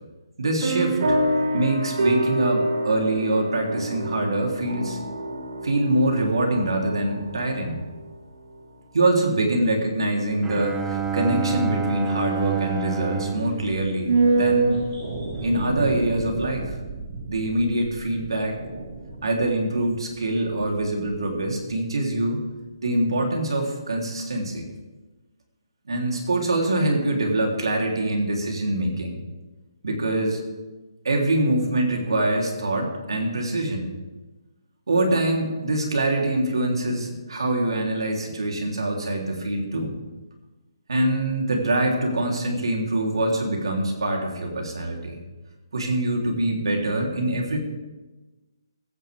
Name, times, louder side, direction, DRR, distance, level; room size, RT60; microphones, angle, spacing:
voice 1, 0.4-1.2 1.5-5.0 5.6-7.8 8.9-14.8 15.4-16.8 17.3-18.6 19.2-22.4 22.8-24.7 25.9-29.2 29.8-30.4 31.0-33.9 34.9-39.9 40.9-45.2 45.7-47.6, right 1 dB, 85° right, 1 dB, 3.4 m, -24 dB
sound 1, 0.6-8.7, right 1 dB, 65° right, 3.5 m, -28 dB
Bowed string instrument, 10.4-14.8, right 6 dB, 10° right, 0.6 m, -29 dB
sound 2, 10.7-21.1 21.4-21.5, right 3 dB, 50° right, 5.6 m, -28 dB
22.5 x 9.7 x 3.5 m, 1.2 s
hypercardioid pair, 165°, 3 cm